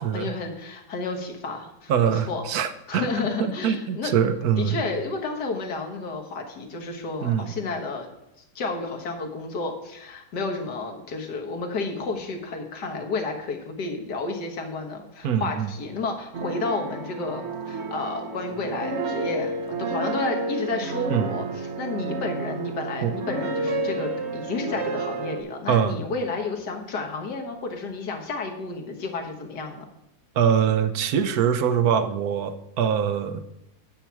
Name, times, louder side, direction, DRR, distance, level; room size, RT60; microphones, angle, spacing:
voice 1, 0.0-2.6 2.9-4.1 4.6-8.1 8.6-29.8, left 3 dB, 85° left, 2 dB, 2.0 m, -31 dB
voice 2, 1.9-3.1 3.4-4.8 7.2-7.5 15.2-15.7 21.1-21.3 23.0-23.1 25.7-26.0 30.4-33.4, right 8 dB, 70° right, 9 dB, 1.2 m, -23 dB
sound 1, 16.3-25.4, right 3 dB, 50° right, 1.0 m, -30 dB
8.8 x 7.3 x 4.6 m, 0.84 s
omnidirectional pair, 1.7 m